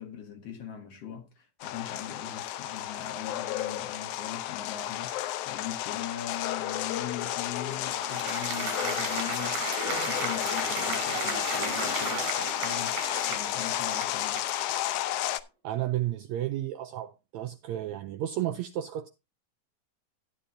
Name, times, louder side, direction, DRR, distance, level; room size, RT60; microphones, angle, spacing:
voice 1, 0.0-14.4, left 9 dB, 55° left, 2.2 m, -41 dB
sound 1, 1.6-15.4, left 14 dB, 75° left, 2.0 m, -32 dB
Applause, 7.4-15.0, right 4 dB, 60° right, 4.6 m, -35 dB
voice 2, 15.6-19.1, right 13 dB, 80° right, 1.7 m, -32 dB
13.0 x 10.0 x 2.6 m
omnidirectional pair, 3.8 m